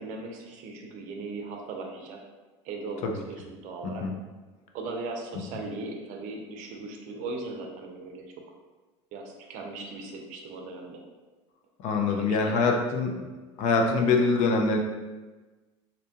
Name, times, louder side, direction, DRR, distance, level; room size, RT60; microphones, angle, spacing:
voice 1, 0.0-2.2 2.6-4.1 4.7-8.3 9.1-11.0 12.2-12.8, right 3 dB, 60° right, 2 dB, 0.5 m, -38 dB
voice 2, 11.8-13.1 13.6-14.8, left 4 dB, 55° left, 2 dB, 0.5 m, -24 dB
2.7 x 2.1 x 2.8 m, 1.2 s
supercardioid pair, 100°, 15 cm